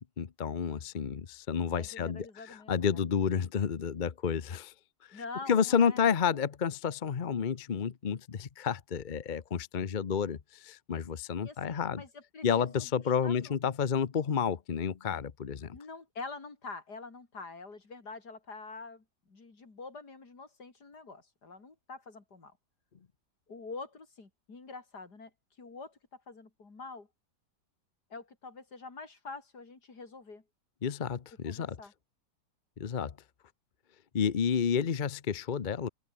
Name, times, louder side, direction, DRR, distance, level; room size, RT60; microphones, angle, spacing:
voice 1, 0.2-4.7 5.1-5.2 5.5-12.0 12.4-15.7 30.8-31.8 32.8-33.1 34.1-35.9, left 7 dB, 40° left, 0.7 m, -30 dB
voice 2, 1.7-3.0 5.1-6.1 11.4-12.9 13.2-13.6 15.7-22.5 23.5-25.3 25.6-27.1 28.1-30.4 31.4-31.9, left 3 dB, 65° left, 4.2 m, -46 dB
omnidirectional pair, 1.9 m